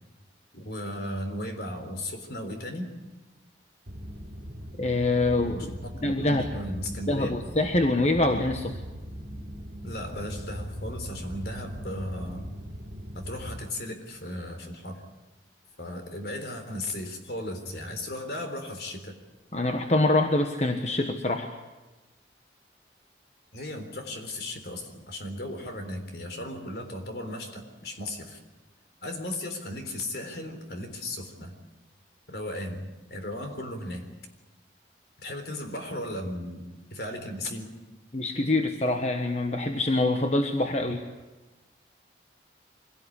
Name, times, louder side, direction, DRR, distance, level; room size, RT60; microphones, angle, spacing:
voice 1, 0.5-2.9 5.5-7.4 9.8-12.5 13.1-15.0 15.8-19.1 23.5-28.4 29.0-31.5 32.3-34.1 35.2-36.6 36.9-37.7, left 1 dB, 60° left, 6 dB, 3.8 m, -36 dB
sound 1, 3.9-13.6, equal, 70° right, 3.0 m, -40 dB
voice 2, 4.8-5.7 6.0-6.5 7.1-8.8 19.5-21.5 38.1-41.0, left 2 dB, 35° left, 5 dB, 1.3 m, -25 dB
24.5 x 17.5 x 9.9 m, 1.1 s
head